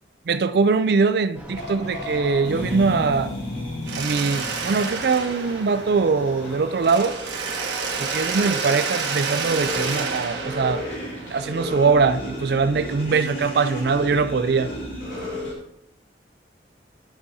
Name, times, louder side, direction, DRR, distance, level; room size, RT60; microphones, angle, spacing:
voice 1, 0.3-3.3 4.0-7.1 8.0-10.8 11.3-14.7, right 4 dB, 60° right, 0.4 m, -22 dB
sound 1, 1.3-7.0, equal, 10° right, 0.9 m, -43 dB
sound 2, 1.5-15.5, left 1 dB, 65° left, 3.1 m, -34 dB
Mechanisms, 3.8-6.4 6.8-11.7, right 5 dB, 80° right, 1.2 m, -29 dB
11.5 x 6.1 x 2.7 m
head